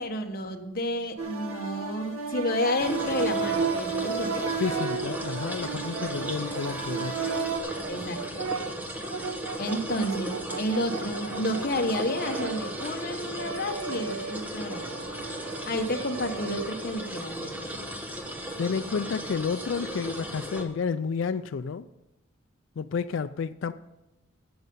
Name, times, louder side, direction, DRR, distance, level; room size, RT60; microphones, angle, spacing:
voice 1, 0.0-4.5 7.9-8.5 9.6-14.9 15.7-17.5, left 1 dB, 45° left, 4 dB, 1.2 m, -30 dB
sound 1, 1.2-7.6, right 5 dB, 90° right, 1.6 m, -32 dB
Brass instrument, 2.3-17.1, right 5 dB, 65° right, 0.5 m, -39 dB
sound 2, 2.8-20.6, equal, 10° right, 1.2 m, -36 dB
voice 2, 4.6-7.2 18.6-21.9 22.8-23.7, left 5 dB, 65° left, 10 dB, 0.4 m, -30 dB
15.5 x 6.7 x 5.4 m, 0.97 s
head